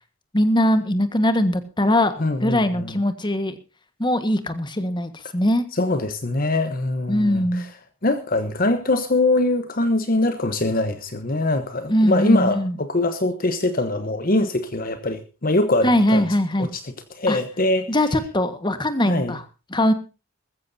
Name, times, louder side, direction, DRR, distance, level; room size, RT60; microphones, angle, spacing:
voice 1, 0.3-2.1 2.4-3.6 4.0-5.6 7.1-7.6 11.9-12.8 15.8-16.7 17.3-17.4 17.9-19.4 19.7-19.9, left 1 dB, 20° left, 1.5 m, -21 dB
voice 2, 2.2-3.0 5.7-7.7 8.0-16.2 16.6-16.8 17.1-17.9 19.1-19.3, left 2 dB, 40° left, 1.1 m, -23 dB
20.5 x 14.5 x 2.7 m
head